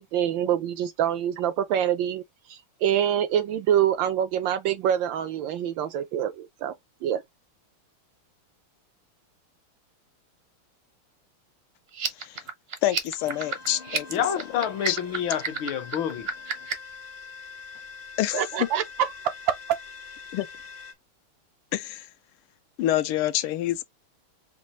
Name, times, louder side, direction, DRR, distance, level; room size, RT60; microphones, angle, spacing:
voice 1, 0.0-2.2 2.5-6.7 7.0-7.2 18.3-19.6, right 10 dB, 75° right, 1.1 m, -25 dB
sound 1, 11.9-16.9, right 6 dB, 50° right, 0.7 m, -32 dB
voice 2, 12.8-14.1 14.9-15.0 18.2-18.5 20.3-20.5 21.7-22.1 22.8-23.8, left 13 dB, 85° left, 1.5 m, -27 dB
sound 2, 13.2-20.9, left 5 dB, 50° left, 0.7 m, -44 dB
voice 3, 13.4-13.8 14.1-16.3, left 9 dB, 70° left, 1.5 m, -29 dB
5.3 x 2.4 x 2.9 m
omnidirectional pair, 2.4 m